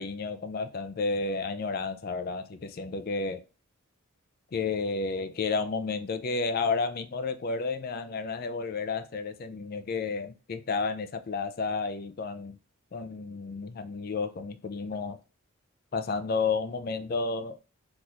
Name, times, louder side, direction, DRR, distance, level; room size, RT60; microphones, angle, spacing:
voice 1, 0.0-3.4 4.5-12.6 12.9-15.2 15.9-17.6, left 4 dB, 40° left, 0.3 m, -31 dB
4.0 x 3.0 x 2.4 m
head